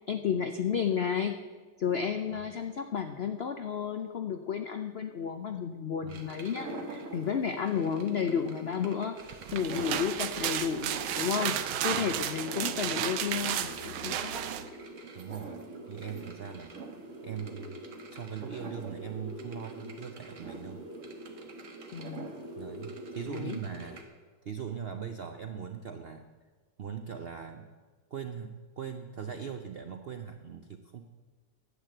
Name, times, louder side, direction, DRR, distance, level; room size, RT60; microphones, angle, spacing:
voice 1, 0.1-1.4 1.8-11.6 11.8-14.4 21.9-22.3 23.3-23.6, left 7 dB, 75° left, 7 dB, 0.5 m, -32 dB
sound 1, 6.1-24.0, right 2 dB, 45° right, 1.5 m, -44 dB
sound 2, 9.3-14.7, right 10 dB, 85° right, 1.4 m, -33 dB
voice 2, 9.8-10.1 11.9-12.1 15.1-15.6 15.9-16.7 17.2-17.8 18.1-20.8 22.6-24.1 24.4-26.3 26.8-27.7 28.1-31.1, right 7 dB, 70° right, 6 dB, 0.5 m, -40 dB
11.5 x 8.2 x 7.7 m, 1.4 s
omnidirectional pair, 1.9 m